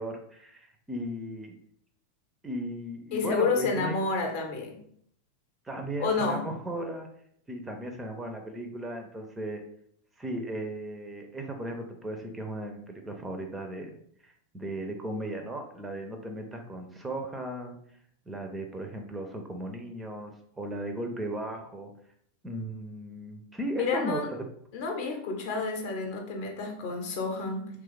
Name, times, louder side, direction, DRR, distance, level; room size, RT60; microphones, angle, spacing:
voice 1, 0.0-1.5 2.4-3.9 5.6-7.1 7.5-9.6 10.2-14.0 14.2-17.8 18.3-21.9 22.4-24.4, right 1 dB, 10° right, 4 dB, 0.4 m, -36 dB
voice 2, 3.1-4.8 6.0-6.4 23.8-24.3 24.7-27.7, left 4 dB, 50° left, 2 dB, 0.6 m, -29 dB
3.0 x 2.3 x 3.3 m, 0.66 s
figure-of-eight pair, 90°, 0 cm